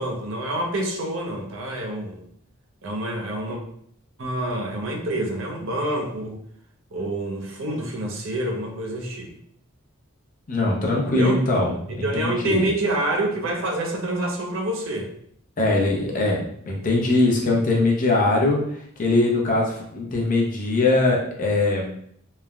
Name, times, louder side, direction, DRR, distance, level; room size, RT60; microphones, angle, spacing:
voice 1, 0.0-2.2 2.8-3.6 4.2-6.4 6.9-9.3 11.0-11.4 11.9-15.1, right 1 dB, 60° right, 1 dB, 0.5 m, -27 dB
voice 2, 10.5-12.7 15.6-21.9, left 2 dB, 40° left, -1 dB, 0.5 m, -22 dB
3.1 x 2.0 x 2.3 m, 0.67 s
head